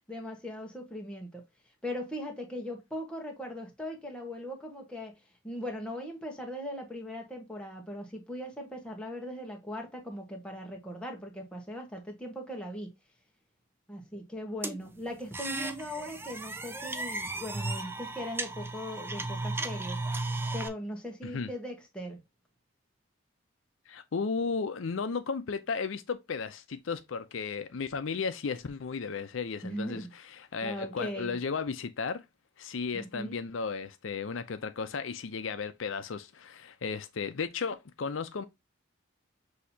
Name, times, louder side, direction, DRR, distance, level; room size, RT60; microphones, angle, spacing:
voice 1, 0.1-1.4 1.8-5.2 5.4-12.9 13.9-20.0 20.5-22.2 29.6-30.1 30.6-31.4 32.9-33.4, equal, 5° left, 1.1 m, -39 dB
sound 1, 14.6-20.7, right 2 dB, 10° right, 0.3 m, -35 dB
voice 2, 23.9-32.2 32.6-38.4, left 5 dB, 75° left, 0.5 m, -34 dB
6.3 x 2.8 x 2.7 m
head